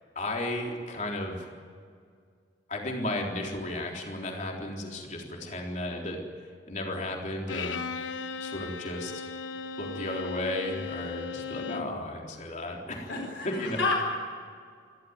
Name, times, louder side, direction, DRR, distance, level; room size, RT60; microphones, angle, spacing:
voice 1, 0.2-1.5 2.7-6.2 6.6-7.8 8.4-9.3 9.8-13.1 13.4-13.8, left 1 dB, 40° left, 0 dB, 3.9 m, -34 dB
Bowed string instrument, 7.5-12.0, left 5 dB, 85° left, 1.1 m, -37 dB
voice 2, 13.1-14.0, left 3 dB, 65° left, 1 dB, 4.5 m, -29 dB
28.5 x 13.5 x 9.5 m, 2.1 s
head